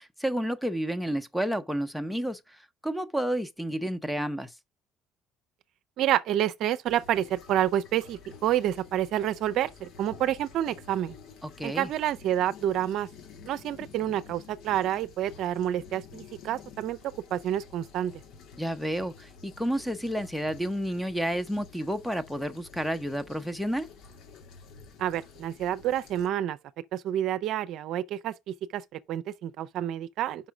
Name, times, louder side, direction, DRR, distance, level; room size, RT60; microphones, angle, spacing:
voice 1, 0.0-4.5 11.4-11.9 18.6-23.9, equal, ahead, 0.9 m, -31 dB
voice 2, 6.0-11.1 11.6-13.1 13.5-18.1 25.0-26.6 26.9-30.5, right 11 dB, 65° right, 0.5 m, -29 dB
sound 1, 6.8-26.3, left 5 dB, 70° left, 1.5 m, -50 dB
5.6 x 3.7 x 5.9 m
supercardioid pair, 70°, 0 cm